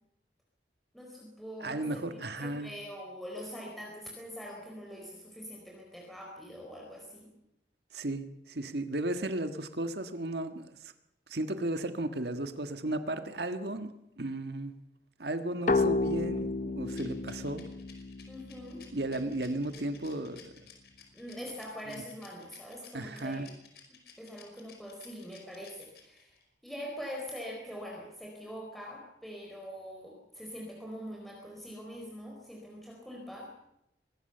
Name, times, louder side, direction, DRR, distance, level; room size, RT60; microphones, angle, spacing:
voice 1, 0.9-7.3 18.3-18.8 21.1-23.5 23.9-26.3 26.6-33.5, equal, ahead, -1 dB, 4.2 m, -43 dB
voice 2, 1.6-2.7 7.9-10.8 11.3-13.9 14.2-14.7 15.2-17.6 18.9-20.5 22.9-23.5, right 1 dB, 70° right, 8 dB, 1.6 m, -34 dB
sound 1, 15.7-19.2, left 3 dB, 45° left, 1.0 m, -31 dB
Rattle, 16.9-26.4, left 8 dB, 65° left, 5.5 m, -55 dB
24.0 x 19.5 x 6.8 m, 0.81 s
head